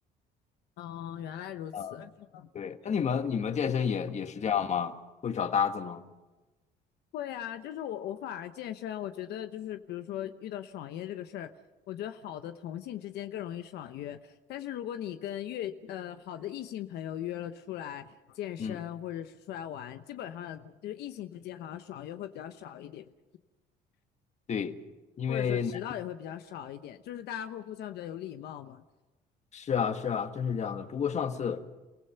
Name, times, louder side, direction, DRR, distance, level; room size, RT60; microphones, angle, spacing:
voice 1, 0.8-2.5 7.1-11.5 11.9-23.1 25.3-28.8, left 11 dB, 75° left, 1.0 m, -39 dB
voice 2, 2.5-5.0 5.2-6.0 18.6-18.8 24.5-24.7 25.2-25.7 29.5-31.6, left 7 dB, 45° left, 1.5 m, -30 dB
29.5 x 16.5 x 5.8 m
cardioid pair, 110°, 17 cm